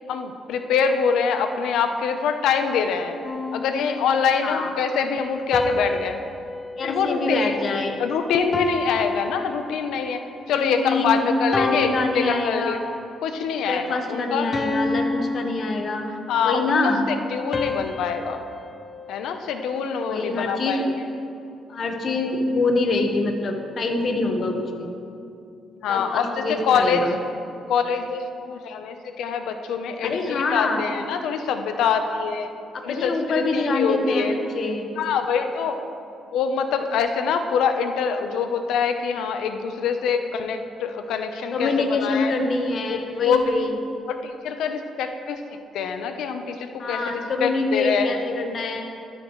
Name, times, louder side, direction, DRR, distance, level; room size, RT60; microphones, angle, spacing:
voice 1, 0.1-3.2 3.5-6.2 6.8-7.5 8.0-12.8 13.2-14.5 16.3-18.4 19.1-21.1 25.8-27.0 27.7-32.5 32.8-34.3 35.0-35.8 36.3-42.3 42.8-43.5 44.1-48.2, left 6 dB, 85° left, 7 dB, 0.8 m, -25 dB
sound 1, 3.2-4.5 5.5-8.0 8.5-10.2 10.8-11.1 11.5-13.1 13.5-13.8 14.5-16.4 17.5-19.9, left 3 dB, 30° left, 0.9 m, -30 dB
voice 2, 4.4-4.7 6.8-8.0 10.6-11.2 11.5-12.8 13.7-16.1 16.4-17.0 20.1-20.8 21.7-24.9 25.9-27.1 30.0-30.8 32.7-34.9 41.5-43.7 46.8-48.9, left 3 dB, 55° left, 4 dB, 1.4 m, -25 dB
13.5 x 13.0 x 3.2 m, 2.7 s
cardioid pair, 90°, 0 cm